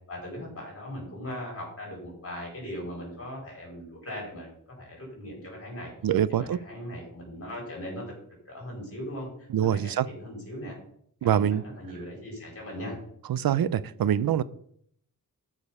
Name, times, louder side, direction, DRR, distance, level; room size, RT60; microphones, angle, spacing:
voice 1, 0.1-4.5 4.8-5.9 6.3-8.0 8.5-9.3 9.6-10.7 11.2-13.0, equal, 40° left, -3 dB, 4.1 m, -39 dB
voice 2, 6.0-6.6 9.5-10.1 11.2-11.6 13.3-14.4, right 10 dB, 80° right, 17 dB, 0.6 m, -24 dB
13.0 x 5.1 x 5.5 m, 0.67 s
wide cardioid pair, 135°, 35 cm